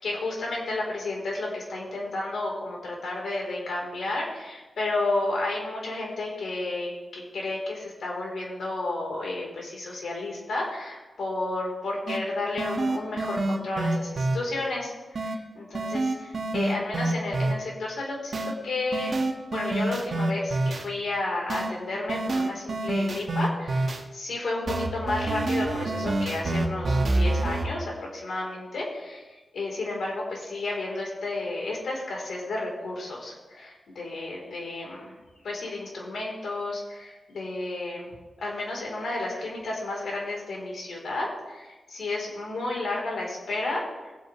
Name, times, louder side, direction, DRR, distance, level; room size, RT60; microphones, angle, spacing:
voice 1, 0.0-19.1 19.5-29.2 29.5-35.1 35.4-43.8, left 2 dB, 80° left, -2 dB, 3.7 m, -32 dB
sound 1, 12.1-12.2 12.6-14.4 15.2-15.4 15.7-17.5 18.3-18.5 18.9-20.8 21.5-21.7 22.1-24.0 24.7-27.7, right 2 dB, 60° right, 1.4 m, -27 dB
19.5 x 8.0 x 3.2 m, 1.2 s
cardioid pair, 75°, 0 cm